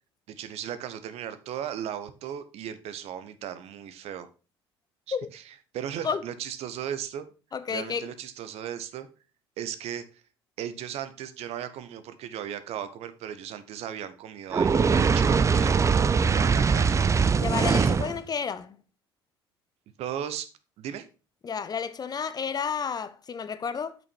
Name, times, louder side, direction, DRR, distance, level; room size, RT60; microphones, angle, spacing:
voice 1, 0.4-4.3 5.1-5.4 5.7-7.3 7.7-9.1 9.6-10.0 10.6-17.9 20.0-20.5 20.8-21.0, right 9 dB, 50° right, 1.0 m, -36 dB
voice 2, 7.5-8.0 17.4-18.8 21.4-24.0, left 6 dB, 30° left, 0.8 m, -31 dB
Fire, 14.5-18.2, right 5 dB, 20° right, 0.5 m, -22 dB
8.2 x 6.4 x 4.4 m
figure-of-eight pair, 60°, 13 cm